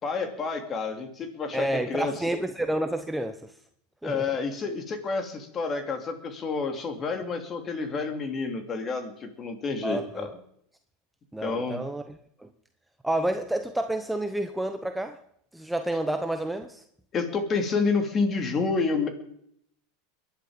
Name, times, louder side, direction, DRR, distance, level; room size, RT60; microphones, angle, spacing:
voice 1, 0.0-2.1 4.0-10.3 11.4-11.8 17.1-19.1, left 4 dB, 30° left, 6 dB, 3.0 m, -29 dB
voice 2, 1.5-3.5 4.0-4.3 9.8-10.3 11.3-12.5 13.0-15.2 15.5-16.8, right 1 dB, 5° right, 7 dB, 0.9 m, -29 dB
22.5 x 11.0 x 5.2 m, 0.70 s
supercardioid pair, 125°, 0 cm